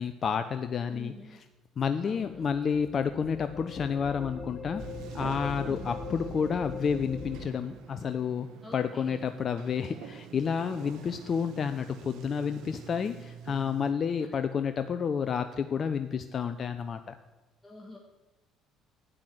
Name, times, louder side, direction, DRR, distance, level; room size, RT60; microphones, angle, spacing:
voice 1, 0.0-1.4 1.8-4.8 5.1-8.5 8.7-17.2, left 6 dB, 45° left, 10 dB, 0.7 m, -30 dB
voice 2, 0.9-1.4 2.0-2.5 5.7-6.0 8.6-9.2 14.3-14.5 17.6-18.0, left 1 dB, 15° left, 0 dB, 2.2 m, -47 dB
sound 1, 2.2-7.4, left 3 dB, 30° left, 2.1 m, -41 dB
Sliding door, 4.8-13.9, right 9 dB, 70° right, 1.3 m, -46 dB
11.5 x 9.5 x 7.9 m, 1.1 s
hypercardioid pair, 60°, 0 cm